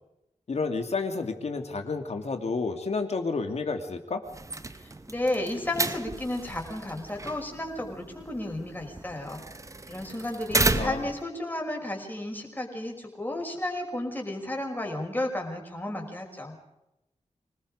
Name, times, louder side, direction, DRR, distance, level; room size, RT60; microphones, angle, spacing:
voice 1, 0.5-4.2 10.7-11.1, left 4 dB, 65° left, 6 dB, 2.7 m, -30 dB
sound 1, 4.3-11.2, right 2 dB, 25° right, 1.2 m, -33 dB
voice 2, 4.8-9.4 9.9-16.6, left 1 dB, 15° left, 1 dB, 5.6 m, -33 dB
26.5 x 19.5 x 5.1 m, 0.88 s
wide cardioid pair, 100°, 12 cm